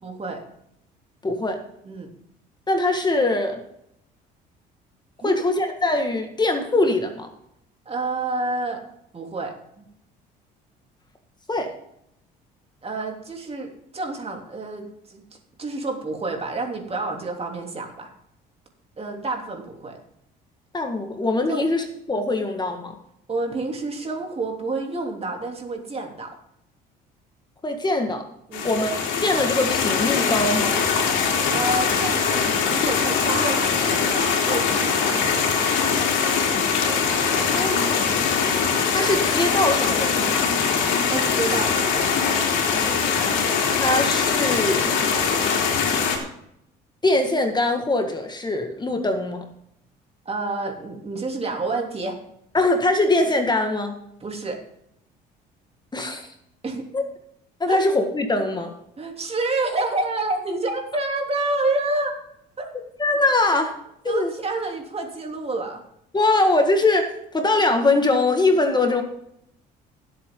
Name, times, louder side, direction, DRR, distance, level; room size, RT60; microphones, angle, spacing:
voice 1, 0.0-0.4 1.8-2.1 5.2-5.4 7.8-8.8 9.1-9.8 12.8-15.2 15.6-18.1 19.0-20.0 21.5-21.6 23.3-26.3 28.5-28.7 31.5-32.3 32.6-35.7 41.1-42.2 50.2-52.2 54.2-54.6 56.6-56.8 57.7-57.8 59.0-62.1 62.6-62.7 64.0-65.8 68.7-69.0, right 2 dB, 30° right, 2 dB, 3.1 m, -29 dB
voice 2, 1.2-1.6 2.7-3.6 5.2-7.3 11.5-11.7 20.7-23.0 27.6-28.3 28.6-30.8 37.4-38.6 38.9-40.3 43.2-45.0 47.0-49.5 52.5-54.0 55.9-56.2 56.9-57.0 57.6-58.7 63.0-63.7 64.0-64.3 66.1-69.0, left 2 dB, 20° left, 5 dB, 1.8 m, -22 dB
sound 1, 28.5-46.2, left 6 dB, 80° left, 3.1 m, -22 dB
17.5 x 8.1 x 3.9 m, 0.76 s
supercardioid pair, 80°, 19 cm